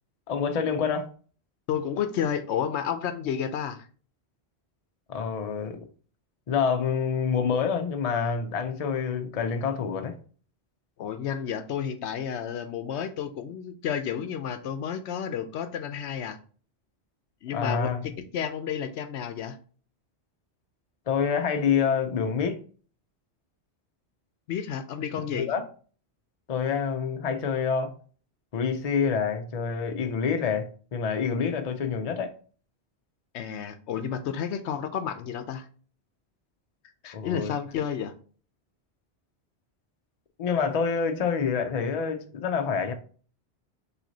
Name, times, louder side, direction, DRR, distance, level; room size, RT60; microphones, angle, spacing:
voice 1, 0.3-1.1 5.1-5.8 6.5-10.2 17.5-18.1 21.1-22.6 25.3-25.7 26.5-27.9 28.5-30.7 30.9-32.3 37.1-37.5 40.4-42.9, left 6 dB, 45° left, 0.6 m, -27 dB
voice 2, 1.7-3.9 11.0-16.4 17.4-19.6 24.5-25.5 33.3-35.6 37.0-38.1, left 8 dB, 85° left, 0.9 m, -31 dB
6.0 x 3.2 x 2.8 m
omnidirectional pair, 1.1 m